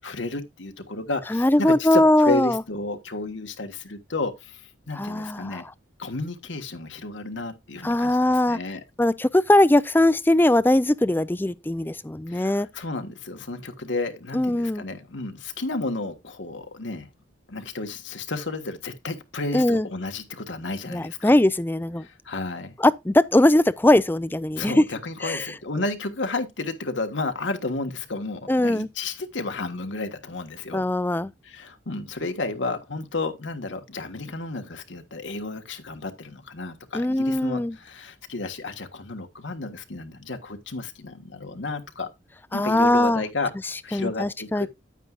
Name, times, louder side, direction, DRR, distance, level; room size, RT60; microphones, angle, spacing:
voice 1, 0.0-5.6 6.0-8.8 12.3-17.1 17.5-21.3 22.0-22.7 24.6-30.8 31.4-42.1 42.5-43.5 43.8-44.7, left 3 dB, 75° left, 1.5 m, -32 dB
voice 2, 1.3-2.6 4.9-5.6 7.8-8.6 9.0-12.7 14.3-14.8 19.5-19.9 20.9-22.1 22.8-24.8 25.2-25.5 28.5-28.9 30.7-31.3 36.9-37.8 42.5-43.2 43.6-44.7, left 1 dB, 10° left, 0.4 m, -20 dB
9.3 x 9.1 x 2.4 m
head